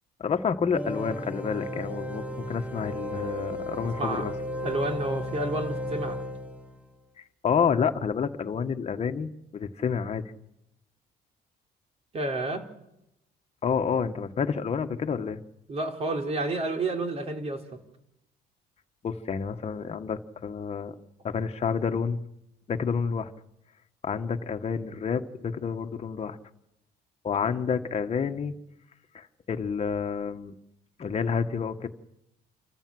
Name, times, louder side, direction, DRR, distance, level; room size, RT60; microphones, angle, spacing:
voice 1, 0.2-4.3 7.2-10.3 13.6-15.4 19.0-21.0 21.2-22.2 22.7-23.3 24.0-26.4 27.2-28.5 29.1-30.5 31.0-31.9, left 6 dB, 40° left, 6 dB, 1.6 m, -29 dB
sound 1, 0.7-6.9, equal, 10° right, 1.7 m, -34 dB
voice 2, 4.0-4.3 4.6-6.2 12.1-12.6 15.7-17.6, right 2 dB, 35° right, 5 dB, 3.6 m, -30 dB
28.0 x 14.5 x 7.8 m, 0.88 s
cardioid pair, 110°, 17 cm